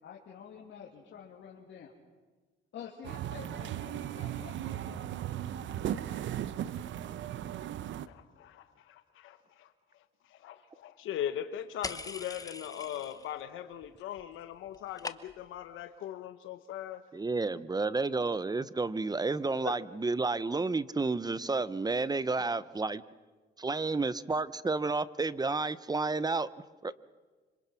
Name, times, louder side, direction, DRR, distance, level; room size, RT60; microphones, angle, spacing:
voice 1, 0.0-1.9 2.7-5.1, left 7 dB, 65° left, -2 dB, 2.7 m, -48 dB
sound 1, 3.0-8.1, right 11 dB, 70° right, 0.8 m, -37 dB
voice 2, 8.1-17.0 19.6-19.7, left 11 dB, 90° left, 9 dB, 1.0 m, -40 dB
sound 2, 11.8-13.4 13.7-14.3 14.5-15.6, left 3 dB, 15° left, 1.0 m, -42 dB
voice 3, 17.1-23.0 23.6-26.5 26.8-26.9, right 3 dB, 20° right, 17 dB, 0.8 m, -31 dB
26.0 x 25.5 x 5.8 m, 1.3 s
cardioid pair, 90°, 20 cm